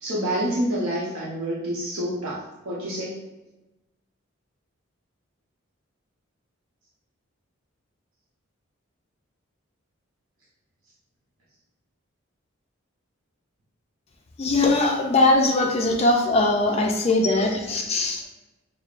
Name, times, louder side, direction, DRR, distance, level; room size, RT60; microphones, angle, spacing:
voice 1, 0.0-3.2, right 1 dB, 80° right, -7 dB, 0.8 m, -28 dB
voice 2, 14.4-18.2, left 2 dB, 30° left, 1 dB, 0.4 m, -21 dB
5.9 x 2.0 x 2.4 m, 1.0 s
head